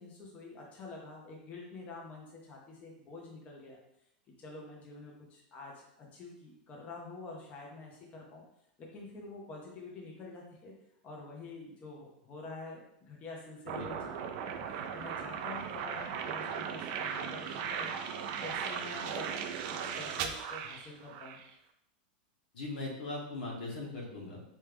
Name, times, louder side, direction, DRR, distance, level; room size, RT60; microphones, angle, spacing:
voice 1, 0.0-3.8 4.4-8.4 8.8-10.7 11.0-14.4 14.7-17.9 18.4-19.4 19.7-21.4, left 3 dB, 25° left, -2 dB, 1.0 m, -47 dB
sound 1, 13.7-21.5, right 7 dB, 50° right, 0.5 m, -37 dB
voice 2, 22.5-24.4, left 2 dB, 80° left, -2 dB, 1.6 m, -39 dB
4.8 x 3.1 x 3.5 m, 0.76 s
supercardioid pair, 140°, 5 cm